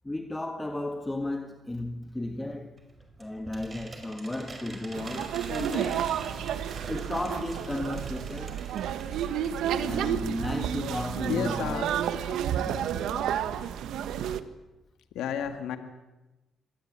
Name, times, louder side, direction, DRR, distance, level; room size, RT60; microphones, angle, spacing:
voice 1, 0.0-2.8 3.2-6.2 6.9-8.6 9.9-11.9 12.6-13.3, left 1 dB, 10° left, 1.8 m, -34 dB
sound 1, 2.8-9.7 10.0-10.1 10.3-10.4, right 2 dB, 30° right, 5.3 m, -45 dB
sound 2, 4.9-14.4, right 9 dB, 80° right, 1.4 m, -31 dB
voice 2, 11.3-11.9 12.3-12.4 13.1-13.4 15.1-15.8, left 8 dB, 85° left, 2.0 m, -33 dB
25.5 x 19.5 x 8.8 m
cardioid pair, 90°, 0 cm